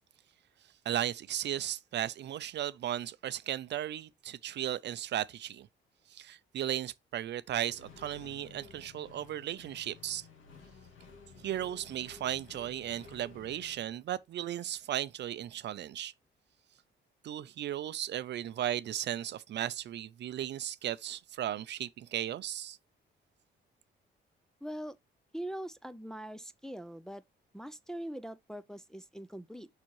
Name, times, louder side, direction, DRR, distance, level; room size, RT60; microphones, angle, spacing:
voice 1, 0.9-5.7 6.1-10.3 11.4-16.1 17.2-22.8, right 11 dB, 60° right, 0.5 m, -36 dB
Accelerating revving vroom, 7.7-13.9, left 4 dB, 80° left, 2.3 m, -54 dB
voice 2, 24.6-25.0 25.3-27.2 27.5-29.7, right 1 dB, 5° left, 0.5 m, -42 dB
6.2 x 5.7 x 3.0 m
cardioid pair, 90°, 20 cm